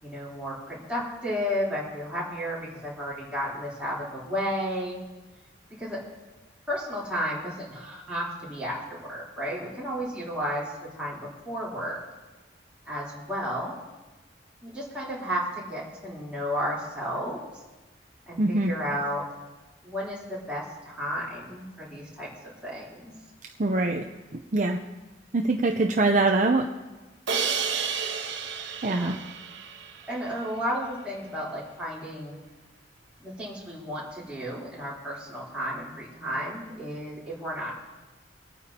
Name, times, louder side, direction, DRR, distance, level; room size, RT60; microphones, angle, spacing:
voice 1, 0.0-5.0 5.8-6.0 6.7-12.0 12.9-13.7 14.6-17.4 18.3-19.2 19.8-23.1 28.8-29.2 30.1-32.4 33.2-37.8, equal, 5° right, -8 dB, 3.5 m, -33 dB
voice 2, 18.4-18.7 23.6-24.1 24.3-24.8 25.3-26.7 28.8-29.2, right 2 dB, 40° right, 3 dB, 0.6 m, -23 dB
Crash cymbal, 27.3-30.3, right 6 dB, 85° right, 1.1 m, -31 dB
24.5 x 9.2 x 2.9 m, 1.2 s
head